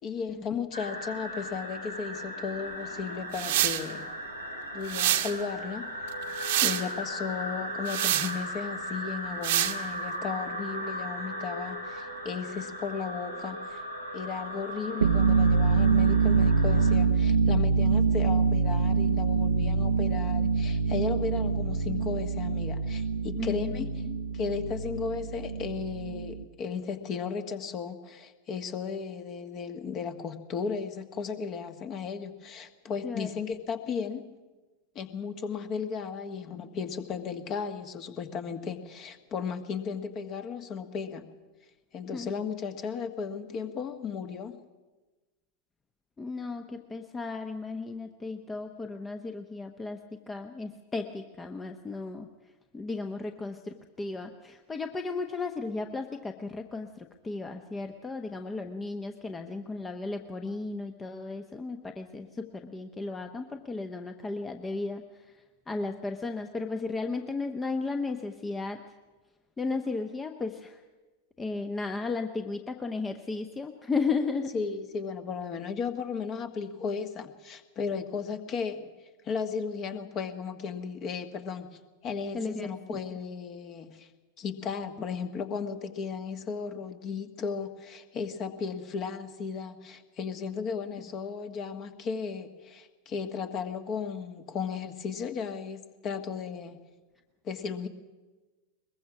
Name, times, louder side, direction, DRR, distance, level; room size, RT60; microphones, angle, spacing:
voice 1, 0.0-4.1 4.7-5.9 6.6-13.8 14.1-23.9 24.3-34.2 34.9-41.3 41.9-44.6 74.5-78.9 79.2-84.1 84.4-96.8 97.4-97.9, left 6 dB, 35° left, 8 dB, 1.6 m, -35 dB
sound 1, 0.7-16.9, equal, 90° left, 3.1 m, -37 dB
sound 2, 3.3-3.8 4.9-5.3 6.1-6.8 7.9-8.3 9.4-9.8, right 15 dB, 50° right, 1.1 m, -26 dB
sound 3, 14.9-26.4, right 4 dB, 75° right, 0.7 m, -25 dB
voice 2, 23.4-24.2 33.0-33.3 42.1-42.3 46.2-52.3 52.7-65.3 65.7-68.8 69.6-70.8 71.4-74.5 82.3-83.0, left 3 dB, 15° left, 6 dB, 1.0 m, -35 dB
22.0 x 21.5 x 6.0 m, 1.2 s
figure-of-eight pair, 90°, 0 cm